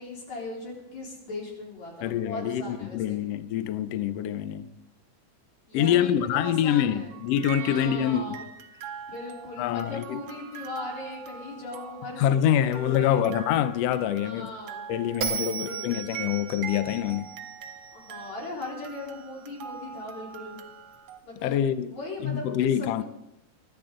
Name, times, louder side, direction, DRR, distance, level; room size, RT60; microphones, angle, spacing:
voice 1, 0.0-3.2 5.7-7.1 7.6-8.4 9.1-13.2 14.2-14.8 15.4-15.9 17.9-20.6 21.2-21.5 21.9-23.0, left 2 dB, 60° left, 5.0 m, -38 dB
voice 2, 2.0-4.7 5.7-8.4 9.6-10.2 12.2-14.5 14.9-17.4 21.4-21.9 22.2-23.0, left 10 dB, 80° left, 1.4 m, -26 dB
sound 1, 7.1-21.2, right 8 dB, 75° right, 1.4 m, -43 dB
Bell, 15.2-18.5, right 7 dB, 55° right, 3.8 m, -35 dB
24.5 x 12.0 x 3.8 m
omnidirectional pair, 3.6 m